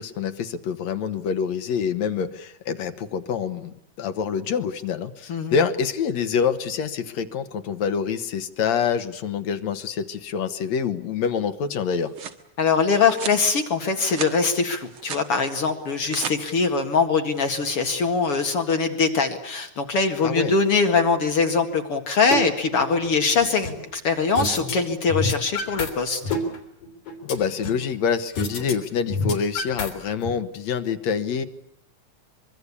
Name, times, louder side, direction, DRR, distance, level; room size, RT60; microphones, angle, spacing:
voice 1, 0.0-12.1 20.2-20.5 27.2-31.5, left 6 dB, 70° left, 10 dB, 2.5 m, -26 dB
sound 1, 11.7-12.4 13.1-13.4 13.9-14.3 14.7-15.3 15.9-16.4, right 7 dB, 50° right, 2.2 m, -34 dB
voice 2, 12.6-26.2, left 4 dB, 55° left, 6 dB, 2.7 m, -22 dB
sound 2, 22.3-22.4 22.8-23.9 24.4-24.7 25.0-25.9 26.2-27.9 28.4-28.7 29.0-30.3, left 3 dB, 90° left, 4.7 m, -28 dB
24.5 x 23.5 x 8.5 m, 0.72 s
omnidirectional pair, 3.3 m